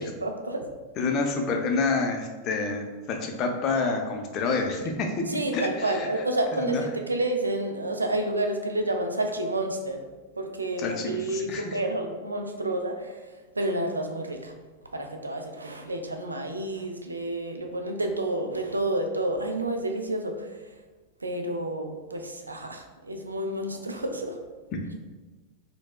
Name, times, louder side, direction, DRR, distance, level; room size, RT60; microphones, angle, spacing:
voice 1, 0.0-0.7 5.3-10.0 10.4-13.2 13.6-14.5 14.9-20.6 21.2-24.4, right 1 dB, 80° right, 4 dB, 0.3 m, -30 dB
voice 2, 1.0-6.1 6.5-6.8 10.8-11.8, left 3 dB, 35° left, 3 dB, 0.4 m, -28 dB
4.1 x 2.0 x 2.3 m, 1.2 s
figure-of-eight pair, 90°, 0 cm